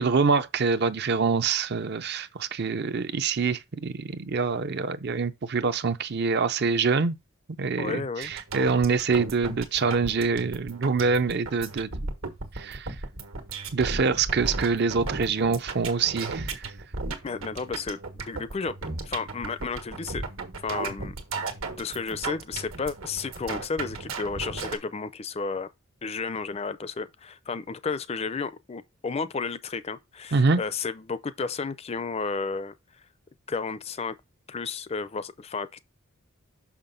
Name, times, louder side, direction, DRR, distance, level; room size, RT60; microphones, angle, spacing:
voice 1, 0.0-7.2 7.6-11.9 12.5-13.0 13.7-16.7 30.3-30.6, right 4 dB, 50° right, 0.5 m, -25 dB
voice 2, 7.8-8.3 17.2-18.7 19.0-20.2 20.6-21.1 21.7-25.7 26.0-32.7 33.5-34.1 34.5-35.8, left 4 dB, 30° left, 0.5 m, -32 dB
sound 1, 8.2-24.8, right 3 dB, 75° right, 1.5 m, -35 dB
6.1 x 5.9 x 3.8 m
head